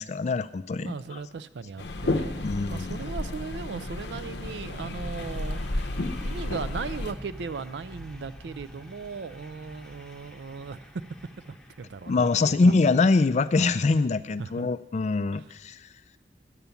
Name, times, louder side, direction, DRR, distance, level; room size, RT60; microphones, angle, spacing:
voice 1, 0.0-1.2 2.4-3.1 12.1-15.8, left 3 dB, 40° left, 14 dB, 0.4 m, -24 dB
voice 2, 0.8-11.0 11.4-12.7 14.4-14.7 15.3-15.5, right 5 dB, 75° right, 15 dB, 0.4 m, -38 dB
sound 1, 1.7-13.3, equal, 5° left, 1.0 m, -47 dB
sound 2, 1.8-7.1, left 2 dB, 70° left, 0.7 m, -32 dB
8.9 x 8.2 x 6.9 m, 0.95 s
head